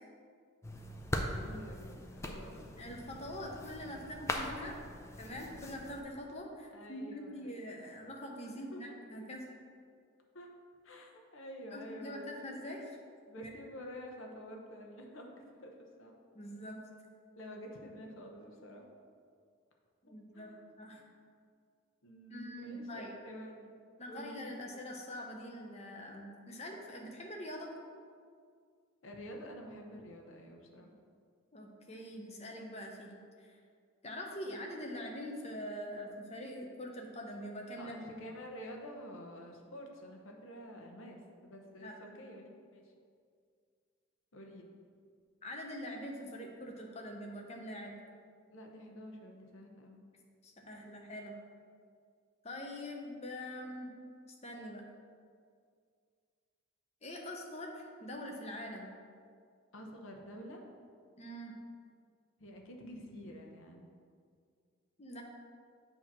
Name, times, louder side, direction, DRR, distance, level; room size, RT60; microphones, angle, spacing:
sound 1, 0.6-6.0, left 1 dB, 15° left, 0.4 m, -41 dB
voice 1, 1.1-2.7 6.7-7.5 8.7-9.0 10.3-10.5 10.8-12.5 13.3-16.1 17.4-18.9 20.3-20.6 20.9-21.1 22.0-23.7 24.1-24.7 29.0-30.9 37.8-42.8 44.3-44.7 48.5-50.0 59.7-60.6 62.4-63.9, equal, 70° left, 1 dB, 0.9 m, -49 dB
voice 2, 2.8-4.8 5.2-9.5 11.7-13.0 13.4-13.5 16.3-16.8 20.0-21.0 22.3-23.1 24.0-27.7 31.5-33.1 33.4-33.6 34.0-37.9 41.8-42.2 45.4-48.0 50.4-51.4 52.4-53.9 54.4-54.8 57.0-58.9 61.2-61.6 65.0-65.2, equal, 30° left, 1 dB, 0.8 m, -44 dB
8.2 x 2.9 x 6.0 m, 2.2 s
head